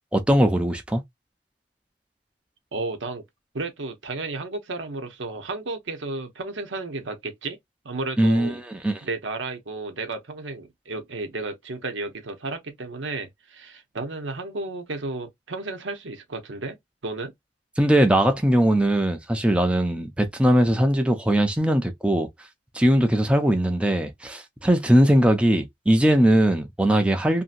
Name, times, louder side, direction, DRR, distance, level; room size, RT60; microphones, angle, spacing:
voice 1, 0.1-1.0 8.2-9.0 17.8-22.3 22.7-27.4, right 1 dB, 5° right, 0.5 m, -20 dB
voice 2, 2.7-3.2 3.5-7.6 7.8-8.6 9.0-16.8 17.0-17.3, right 3 dB, 85° right, 0.9 m, -33 dB
2.7 x 2.7 x 2.4 m
head